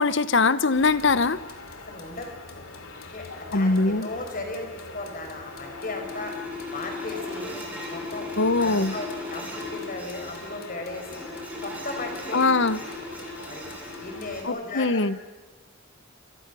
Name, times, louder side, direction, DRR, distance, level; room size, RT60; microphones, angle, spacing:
voice 1, 0.0-1.4 3.5-4.1 8.4-8.9 12.3-12.8 14.4-15.2, left 3 dB, 60° left, 15 dB, 1.0 m, -22 dB
sound 1, 0.7-14.4, left 3 dB, 90° left, 2.7 m, -43 dB
voice 2, 1.9-2.3 3.0-6.3 6.7-7.5 7.9-8.3 8.6-11.2 11.6-12.5 13.5-13.6 14.0-15.1, left 2 dB, 40° left, 3 dB, 5.1 m, -36 dB
sound 2, 5.1-14.4, left 2 dB, 10° right, 6.4 m, -38 dB
28.0 x 25.0 x 6.2 m, 1.3 s
head